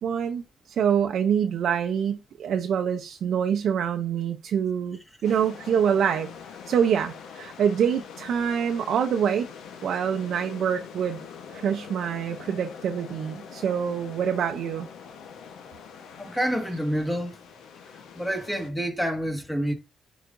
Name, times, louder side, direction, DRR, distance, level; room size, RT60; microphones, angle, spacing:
voice 1, 0.0-6.3 6.7-9.5 9.8-11.2 11.5-14.9, right 8 dB, 65° right, 0.6 m, -25 dB
sound 1, 5.2-18.7, left 7 dB, 80° left, 1.0 m, -44 dB
voice 2, 16.2-17.4 18.1-19.7, equal, 10° left, 1.7 m, -28 dB
9.2 x 4.0 x 2.6 m
cardioid pair, 90°, 0 cm